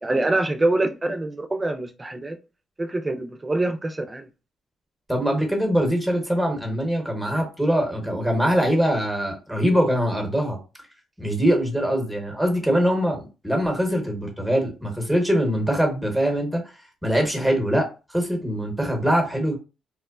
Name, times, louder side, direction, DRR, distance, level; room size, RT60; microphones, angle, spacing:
voice 1, 0.0-2.4 2.8-4.3, right 2 dB, 20° right, 0.4 m, -25 dB
voice 2, 5.1-10.6 11.2-16.6 17.0-19.6, equal, ahead, 1.0 m, -23 dB
2.9 x 2.0 x 2.3 m
cardioid pair, 90°, 0 cm